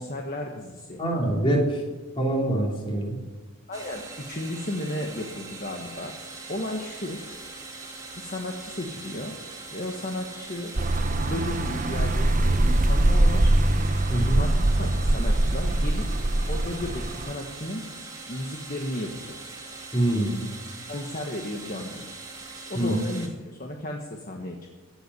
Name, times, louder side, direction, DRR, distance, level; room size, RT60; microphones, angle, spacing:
voice 1, 0.0-1.0 3.7-6.1 6.5-7.2 8.1-9.3 9.7-10.7 11.1-13.5 14.4-16.1 16.5-17.8 18.3-19.3 20.9-22.1 22.7-24.7, left 1 dB, 40° left, 1 dB, 1.5 m, -34 dB
voice 2, 1.0-1.8 2.2-3.2 14.1-14.4 19.9-20.4 22.8-22.9, right 1 dB, 25° left, -1 dB, 3.4 m, -24 dB
sound 1, 3.7-23.3, right 3 dB, 15° right, 2.5 m, -41 dB
sound 2, 10.8-17.3, right 1 dB, 35° right, 0.8 m, -23 dB
16.0 x 8.3 x 9.7 m, 1.3 s
head